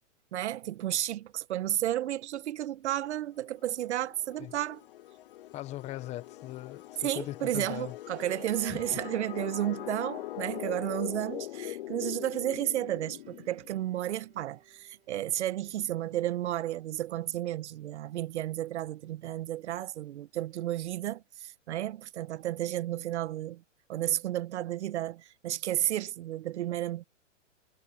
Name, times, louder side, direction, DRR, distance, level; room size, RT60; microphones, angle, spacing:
voice 1, 0.3-4.8 7.0-23.6 23.9-27.0, right 13 dB, 60° right, 1.1 m, -32 dB
sound 1, 3.5-14.0, left 14 dB, 45° left, 0.5 m, -42 dB
voice 2, 5.5-8.0 8.7-8.8, left 15 dB, 15° left, 0.8 m, -39 dB
Bowed string instrument, 8.8-15.5, right 12 dB, 20° right, 6.3 m, -64 dB
hypercardioid pair, 145°, 38 cm